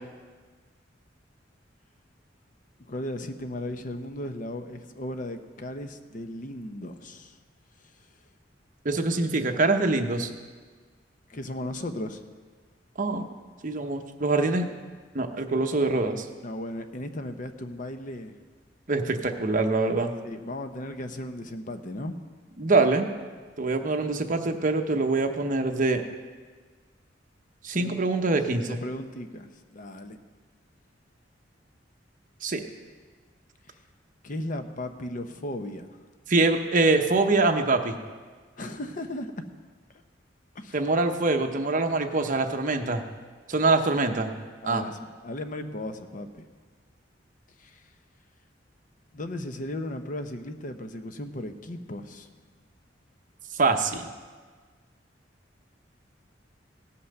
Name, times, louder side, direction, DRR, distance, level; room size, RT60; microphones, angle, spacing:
voice 1, 2.9-7.4 11.3-12.3 16.4-18.3 20.2-22.2 27.6-28.0 28.5-30.2 34.2-36.0 38.6-39.3 40.5-40.8 44.6-46.5 47.6-47.8 49.1-52.3, left 1 dB, 45° left, 8 dB, 0.8 m, -36 dB
voice 2, 8.8-10.3 13.0-13.3 13.6-14.7 15.1-16.2 18.9-20.1 22.6-23.1 23.6-26.0 27.6-28.8 32.4-32.6 36.3-37.9 40.7-43.0 43.5-44.3 44.6-44.8 53.5-54.0, right 3 dB, 45° right, 5 dB, 0.9 m, -24 dB
16.5 x 5.7 x 6.6 m, 1.5 s
head